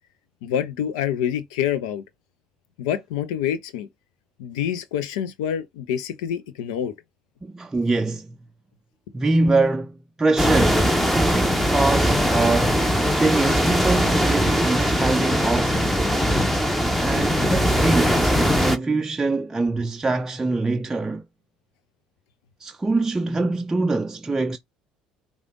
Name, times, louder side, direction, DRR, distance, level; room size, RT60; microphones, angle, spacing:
voice 1, 0.4-2.0 2.8-3.9 4.4-6.9, left 9 dB, 75° left, 0.6 m, -26 dB
voice 2, 7.4-8.4 9.1-12.9 13.2-16.1 17.0-21.3 22.6-24.6, right 3 dB, 15° right, 0.4 m, -24 dB
sound 1, 10.4-18.8, equal, 5° left, 1.0 m, -20 dB
5.0 x 2.4 x 3.7 m
hypercardioid pair, 65°, 3 cm